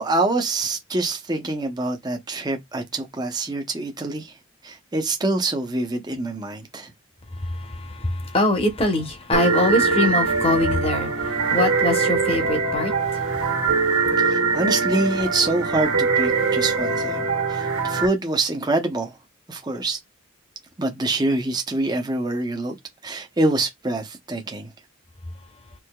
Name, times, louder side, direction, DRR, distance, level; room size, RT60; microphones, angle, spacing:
voice 1, 0.0-4.3 4.6-6.9 14.3-19.1 19.5-20.0 20.8-22.8 23.0-24.7, right 2 dB, 20° right, 0.6 m, -25 dB
voice 2, 7.3-13.4, left 2 dB, 25° left, 0.8 m, -23 dB
sound 1, 9.3-18.1, right 4 dB, 90° right, 1.4 m, -22 dB
4.5 x 2.7 x 2.2 m
head